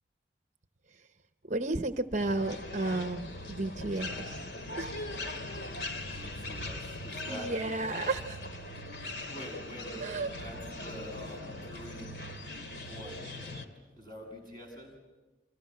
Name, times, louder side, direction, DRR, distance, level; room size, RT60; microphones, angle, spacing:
voice 1, 1.5-4.4 4.8-5.0 7.3-8.4 10.0-10.3, right 2 dB, 40° right, 8 dB, 0.8 m, -33 dB
sound 1, 2.2-13.6, left 2 dB, 70° left, 2.3 m, -40 dB
voice 2, 6.0-8.2 9.3-12.3 12.9-15.0, equal, 25° left, 1 dB, 7.8 m, -45 dB
29.0 x 26.0 x 7.7 m, 1.2 s
head